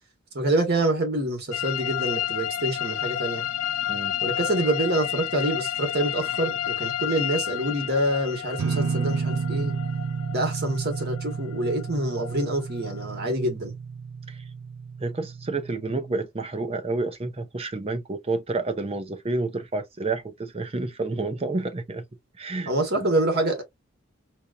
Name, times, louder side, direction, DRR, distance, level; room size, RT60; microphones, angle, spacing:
voice 1, 0.3-3.5 4.2-9.7 10.3-13.7 22.6-23.6, right 1 dB, 50° right, 1.5 m, -26 dB
sound 1, 1.5-13.0, left 12 dB, 85° left, 0.5 m, -31 dB
sound 2, 8.6-16.2, right 5 dB, 75° right, 0.3 m, -31 dB
voice 2, 15.0-22.0 22.4-22.7, right 3 dB, 30° right, 0.6 m, -29 dB
4.4 x 2.2 x 2.5 m
head